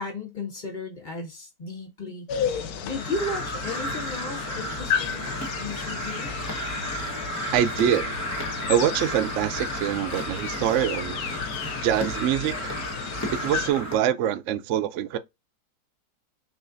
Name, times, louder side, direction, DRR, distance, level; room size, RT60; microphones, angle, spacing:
voice 1, 0.0-2.3 2.8-5.3 5.6-6.3, left 2 dB, 30° left, 1.2 m, -34 dB
sound 1, 2.3-13.7, left 7 dB, 70° left, 1.1 m, -33 dB
Crow, 2.9-14.0, equal, 10° left, 0.9 m, -33 dB
voice 2, 7.5-8.0 8.7-11.2 11.8-12.7 13.3-15.2, right 10 dB, 85° right, 0.6 m, -24 dB
6.1 x 2.4 x 2.5 m
omnidirectional pair, 1.8 m